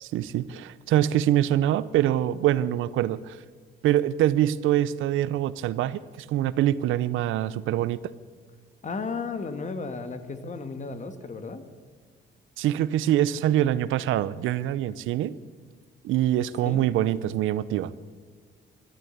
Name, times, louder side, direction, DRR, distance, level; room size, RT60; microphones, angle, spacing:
voice 1, 0.0-3.4 3.8-8.0 12.6-15.4 16.0-17.9, right 12 dB, 85° right, 17 dB, 0.6 m, -24 dB
voice 2, 8.8-11.6 16.6-16.8, left 4 dB, 40° left, 9 dB, 1.6 m, -34 dB
13.0 x 12.5 x 8.0 m, 1.5 s
cardioid pair, 90°, 20 cm